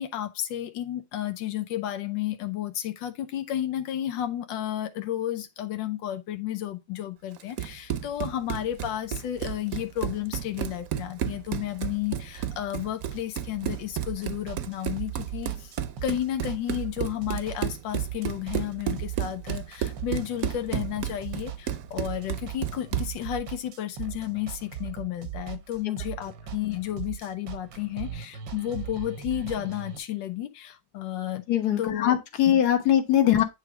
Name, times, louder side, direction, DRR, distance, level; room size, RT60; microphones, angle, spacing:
voice 1, 0.0-15.8 16.0-31.4 31.8-32.1, left 12 dB, 90° left, 1.4 m, -32 dB
Run, 7.4-23.2, right 10 dB, 60° right, 1.0 m, -32 dB
sound 1, 13.5-30.0, right 10 dB, 90° right, 1.7 m, -39 dB
voice 2, 31.5-33.4, left 11 dB, 60° left, 1.7 m, -21 dB
9.1 x 3.3 x 4.6 m
omnidirectional pair, 1.9 m